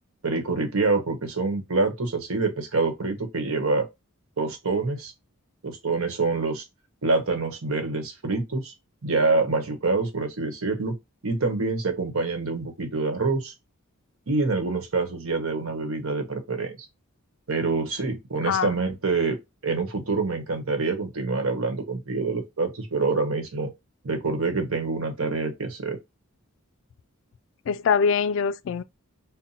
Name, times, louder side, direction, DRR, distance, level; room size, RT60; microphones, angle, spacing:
voice 1, 0.2-3.9 4.4-5.1 5.6-6.6 7.0-8.7 9.0-11.0 11.2-13.5 14.3-16.9 17.5-19.4 19.6-23.7 24.0-26.0, right 3 dB, 75° right, 1.0 m, -26 dB
voice 2, 27.7-28.8, left 6 dB, 60° left, 0.3 m, -23 dB
5.6 x 2.1 x 2.6 m
head